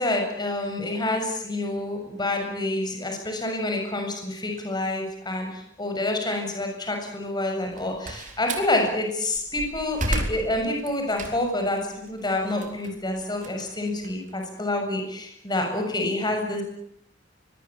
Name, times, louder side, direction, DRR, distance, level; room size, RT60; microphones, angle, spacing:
voice 1, 0.0-16.6, left 2 dB, 20° left, 3 dB, 7.4 m, -28 dB
Slam, 7.6-8.7 9.3-11.7 12.1-14.5, right 1 dB, 40° right, 3.9 m, -32 dB
24.5 x 22.0 x 8.9 m, 0.72 s
head